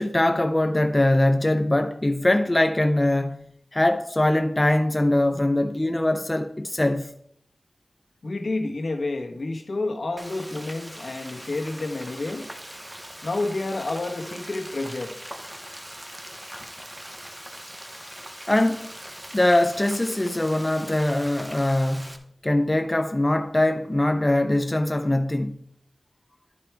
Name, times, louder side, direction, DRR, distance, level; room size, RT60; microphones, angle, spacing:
voice 1, 0.0-7.2 18.5-18.9 19.3-22.1 22.4-25.6, left 1 dB, 25° left, 0.4 m, -22 dB
voice 2, 8.2-12.5 13.2-15.1 17.9-18.1, left 2 dB, 70° left, 1.1 m, -29 dB
Frying (food), 10.2-22.2, equal, 10° right, 0.8 m, -41 dB
11.0 x 4.5 x 4.6 m
wide cardioid pair, 75°, 0 cm